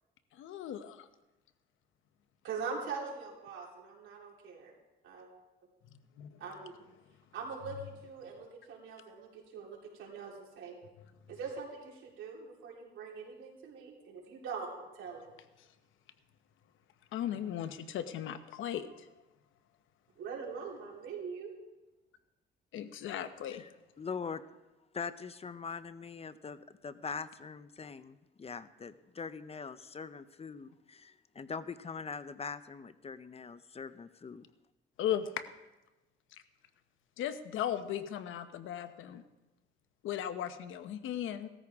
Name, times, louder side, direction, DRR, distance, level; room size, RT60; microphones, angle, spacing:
voice 1, 0.4-1.0 6.2-6.3 17.1-18.9 22.7-23.6 35.0-35.3 37.2-39.2 40.0-41.5, left 10 dB, 80° left, 10 dB, 1.0 m, -36 dB
voice 2, 2.4-4.7 5.0-5.3 6.4-6.7 7.3-10.7 11.3-15.3 20.2-21.5, right 5 dB, 85° right, -2 dB, 3.8 m, -42 dB
voice 3, 24.0-24.4 24.9-34.5, left 5 dB, 30° left, 13 dB, 0.7 m, -42 dB
17.5 x 13.5 x 3.6 m, 1.0 s
cardioid pair, 90°, 20 cm